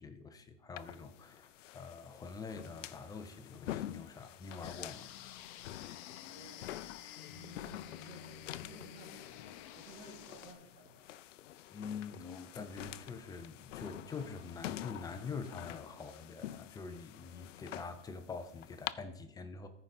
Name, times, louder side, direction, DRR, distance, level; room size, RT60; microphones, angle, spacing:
voice 1, 0.0-5.1 11.7-19.7, left 4 dB, 10° left, 8 dB, 0.4 m, -45 dB
sound 1, 0.8-18.9, left 13 dB, 85° left, 0.6 m, -47 dB
sound 2, 4.6-10.5, left 10 dB, 40° left, 0.8 m, -51 dB
voice 2, 6.3-6.8 7.3-11.0, right 1 dB, 35° right, -4 dB, 2.9 m, -55 dB
14.0 x 5.1 x 4.1 m, 0.80 s
hypercardioid pair, 135°, 36 cm